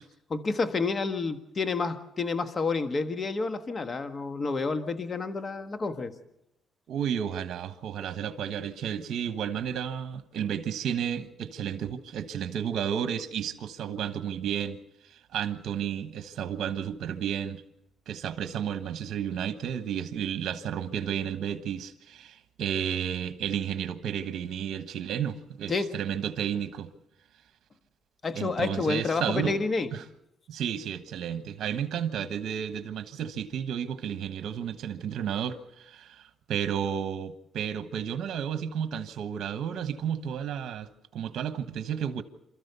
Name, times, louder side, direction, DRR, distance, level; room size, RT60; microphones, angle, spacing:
voice 1, 0.3-6.1 25.7-25.9 28.2-29.9, left 4 dB, 40° left, 1.5 m, -29 dB
voice 2, 6.9-14.8 15.1-17.6 18.1-26.9 28.3-29.6 29.9-30.0 30.5-42.2, right 8 dB, 70° right, 1.3 m, -32 dB
27.5 x 13.5 x 6.9 m
cardioid pair, 90°, 0 cm